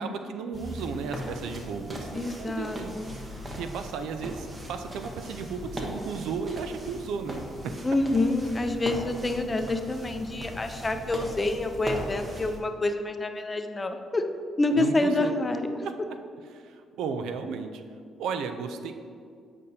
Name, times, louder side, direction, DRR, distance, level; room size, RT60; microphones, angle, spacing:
voice 1, 0.0-7.7 14.7-15.4 15.8-15.9 16.5-17.8 18.2-19.0, right 5 dB, 85° right, 8 dB, 0.4 m, -34 dB
sound 1, 0.5-12.6, equal, 30° right, 1.1 m, -39 dB
voice 2, 2.1-3.1 7.8-14.2 14.6-15.7, left 2 dB, 25° left, 7 dB, 0.5 m, -27 dB
8.5 x 5.2 x 2.8 m, 2.2 s
cardioid pair, 90°, 0 cm